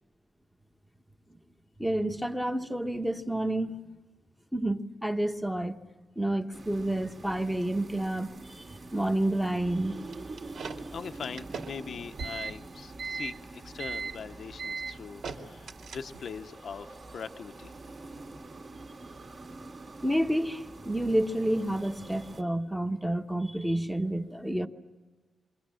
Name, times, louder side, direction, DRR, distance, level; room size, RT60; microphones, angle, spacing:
voice 1, 1.8-3.8 4.5-5.8 6.2-8.6 8.9-10.0 20.0-24.7, right 1 dB, ahead, 1.1 m, -29 dB
sound 1, 6.5-22.4, right 2 dB, 40° right, 2.2 m, -46 dB
sound 2, 10.1-16.4, right 5 dB, 65° right, 2.6 m, -38 dB
voice 2, 10.9-15.7 15.9-17.7, left 6 dB, 50° left, 0.7 m, -41 dB
28.0 x 24.0 x 7.6 m
wide cardioid pair, 180°, 0 cm